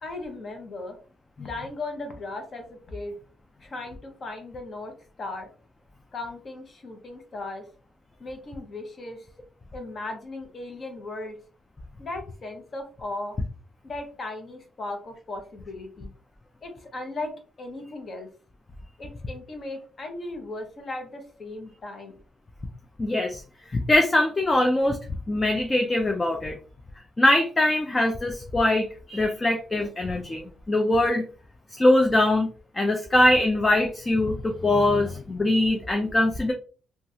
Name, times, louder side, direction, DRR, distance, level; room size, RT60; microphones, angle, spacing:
voice 1, 0.0-1.0 1.4-3.1 3.6-5.5 6.1-7.7 8.2-9.3 9.7-11.4 12.0-13.4 13.8-16.1 16.6-18.3 19.0-22.2, left 2 dB, 35° left, 4 dB, 0.8 m, -37 dB
voice 2, 23.0-23.4 23.7-25.0 25.3-26.6 27.2-31.2 31.8-32.5 32.7-36.5, left 1 dB, 15° left, 3 dB, 0.4 m, -22 dB
3.0 x 2.3 x 2.7 m, 0.38 s
cardioid pair, 150°, 0 cm